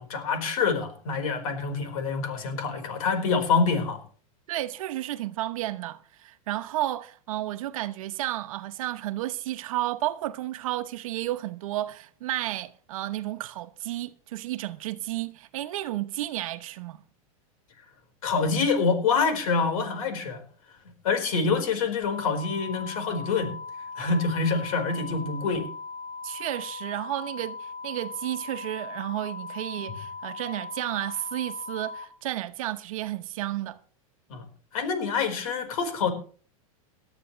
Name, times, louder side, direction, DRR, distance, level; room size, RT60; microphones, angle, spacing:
voice 1, 0.0-4.0 18.2-20.4 21.0-23.5 24.0-25.7 34.3-34.5 34.7-36.1, left 4 dB, 75° left, 4.6 m, -26 dB
voice 2, 4.5-17.0 26.2-33.8, right 15 dB, 70° right, 1.0 m, -32 dB
sound 1, 22.0-32.0, left 4 dB, 50° left, 2.1 m, -39 dB
18.5 x 12.5 x 3.3 m
supercardioid pair, 150°, 18 cm